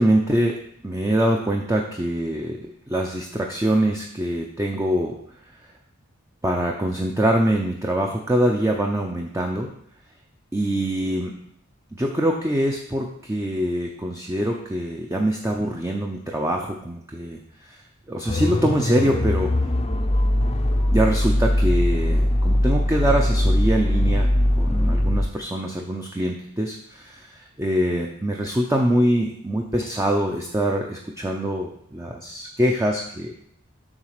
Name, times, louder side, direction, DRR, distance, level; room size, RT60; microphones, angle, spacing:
voice 1, 0.0-5.1 6.4-9.7 10.5-11.4 11.9-17.4 17.7-17.8 18.1-19.5 20.9-24.3 24.6-33.3, right 1 dB, 15° right, 0 dB, 0.6 m, -24 dB
sound 1, 18.3-25.3, left 1 dB, 30° left, 0.6 m, -21 dB
7.3 x 4.0 x 6.6 m, 0.66 s
head